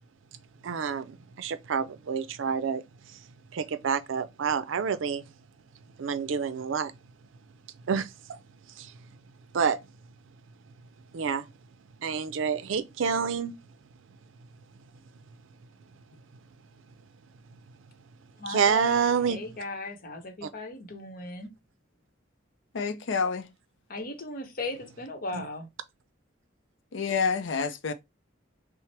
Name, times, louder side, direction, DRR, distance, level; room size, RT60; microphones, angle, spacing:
voice 1, 0.6-2.8 3.5-5.2 6.0-6.9 7.9-8.4 8.8-8.9 9.5-9.8 11.1-11.4 12.0-13.5 18.5-19.4 25.3-25.4, right 6 dB, 75° right, 0.4 m, -28 dB
voice 2, 18.4-21.5 23.9-25.7, left 2 dB, 45° left, 0.9 m, -37 dB
voice 3, 22.7-23.5 26.9-27.9, left 5 dB, 70° left, 0.5 m, -28 dB
5.7 x 2.1 x 3.3 m
head